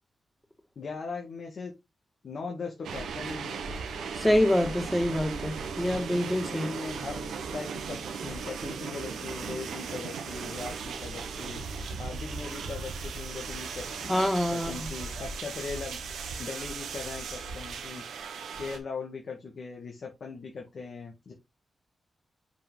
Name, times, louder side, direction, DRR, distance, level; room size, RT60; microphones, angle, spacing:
voice 1, 0.8-1.7 2.2-3.6 6.5-11.6 12.0-14.1 14.5-16.0 16.4-18.0 18.6-21.3, left 4 dB, 65° left, 1.9 m, -39 dB
sound 1, 2.8-18.8, right 5 dB, 90° right, 1.2 m, -37 dB
voice 2, 4.1-6.7 14.1-14.9, left 1 dB, 10° left, 2.2 m, -26 dB
6.9 x 5.3 x 3.9 m
cardioid pair, 50°, 0 cm